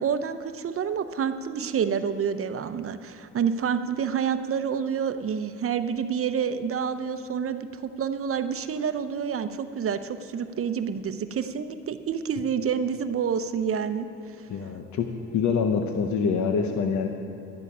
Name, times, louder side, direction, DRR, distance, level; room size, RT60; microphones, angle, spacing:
voice 1, 0.0-14.1 14.4-14.5, right 7 dB, 50° right, 10 dB, 0.7 m, -28 dB
voice 2, 14.5-17.1, left 6 dB, 70° left, 5 dB, 0.9 m, -25 dB
12.5 x 11.0 x 5.5 m, 2.8 s
cardioid pair, 90°, 30 cm